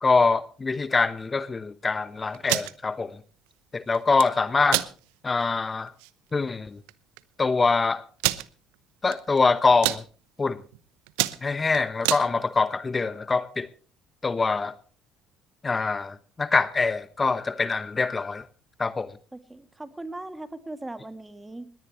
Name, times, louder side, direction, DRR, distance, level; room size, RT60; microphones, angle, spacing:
voice 1, 0.0-3.2 3.7-4.8 5.2-5.9 6.3-6.8 7.4-8.0 9.0-10.0 10.4-10.6 11.4-13.7 14.2-14.7 15.6-18.4 18.8-19.1, left 4 dB, 25° left, 1.0 m, -24 dB
sound 1, 2.3-2.7 3.9-4.3 4.7-4.9 5.4-5.5 5.9-6.1 6.9-7.0 7.2-7.3 8.2-8.5 9.1-9.4 9.7-10.0 10.6-10.8 11.1-12.2, right 21 dB, 75° right, 0.8 m, -26 dB
voice 2, 19.3-21.7, right 2 dB, 15° right, 2.3 m, -39 dB
20.5 x 18.0 x 3.1 m
hypercardioid pair, 60°, 0 cm